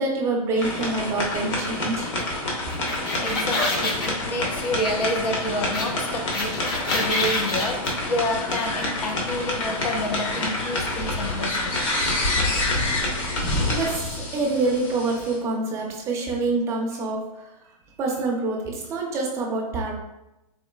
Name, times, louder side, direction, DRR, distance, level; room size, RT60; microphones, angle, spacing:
voice 1, 0.0-2.1 13.7-17.5 18.0-19.9, right 3 dB, 15° right, -1 dB, 0.4 m, -26 dB
sound 1, 0.6-15.4, left 2 dB, 50° left, 1.0 m, -27 dB
sound 2, 2.7-4.1 5.7-5.9 6.1-7.9, left 2 dB, 35° left, 0.6 m, -26 dB
voice 2, 3.2-12.2, left 1 dB, 85° left, 3 dB, 0.7 m, -29 dB
3.8 x 3.5 x 2.2 m, 0.94 s
hypercardioid pair, 155°, 20 cm